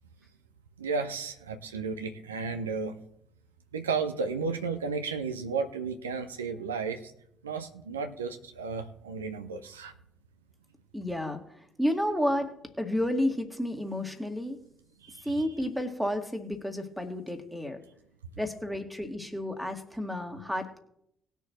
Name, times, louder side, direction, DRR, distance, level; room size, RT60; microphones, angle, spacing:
voice 1, 0.8-2.9 3.7-7.1 7.4-9.9 15.0-15.4, right 4 dB, 85° right, 6 dB, 0.7 m, -33 dB
voice 2, 10.9-12.5 12.8-14.6 15.2-17.8 18.4-20.8, left 1 dB, ahead, 4 dB, 2.0 m, -31 dB
19.5 x 6.8 x 3.1 m, 0.75 s
figure-of-eight pair, 45°, 0 cm